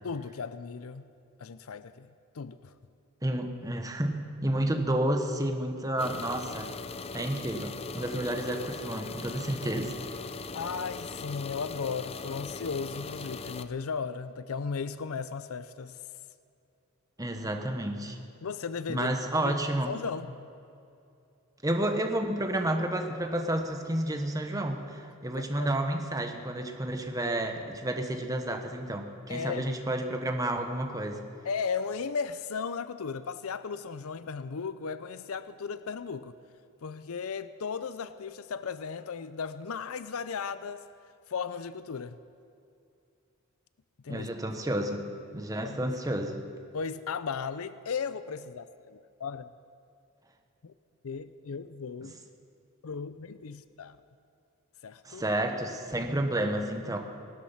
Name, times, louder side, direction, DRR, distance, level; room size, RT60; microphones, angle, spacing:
voice 1, 0.0-1.0 1.4-2.1 2.3-2.7 10.5-16.0 18.4-19.1 19.5-19.6 19.8-20.4 25.4-25.7 29.3-29.6 31.4-36.3 36.8-40.8 41.3-42.2 44.0-44.3 45.6-45.9 46.7-49.5 50.6-50.7 51.0-52.1 52.8-54.0 54.8-55.2, left 5 dB, 80° left, 13 dB, 0.5 m, -36 dB
voice 2, 3.2-6.7 7.1-9.9 17.2-18.2 18.9-19.9 21.6-31.2 44.1-45.0 45.3-46.4 52.0-52.1 55.0-57.0, right 1 dB, 15° right, 4 dB, 1.3 m, -30 dB
sound 1, 6.0-13.6, left 4 dB, 30° left, 0.5 m, -40 dB
19.0 x 12.5 x 5.8 m, 2.6 s
head